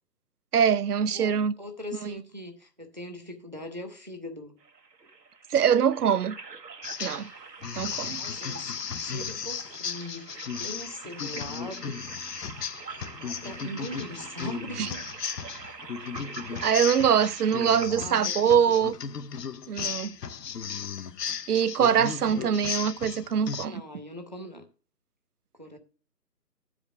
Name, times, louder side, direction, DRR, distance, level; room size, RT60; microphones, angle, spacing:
voice 1, 0.5-1.5 2.0-2.1 5.5-6.4 7.0-7.3 7.8-8.3 14.8-14.9 16.6-18.9 19.7-20.2 21.5-23.8, right 8 dB, 70° right, 0.6 m, -23 dB
voice 2, 1.1-4.6 8.2-8.7 9.0-12.0 13.1-15.1 17.5-18.6 22.3-22.5 23.6-24.6 25.6-25.8, left 1 dB, 30° right, 0.6 m, -41 dB
sound 1, 4.6-17.9, right 4 dB, 85° right, 1.4 m, -44 dB
sound 2, 6.8-7.3 7.6-23.7, left 7 dB, 75° left, 0.8 m, -35 dB
9.5 x 5.0 x 5.9 m
hypercardioid pair, 175°, 48 cm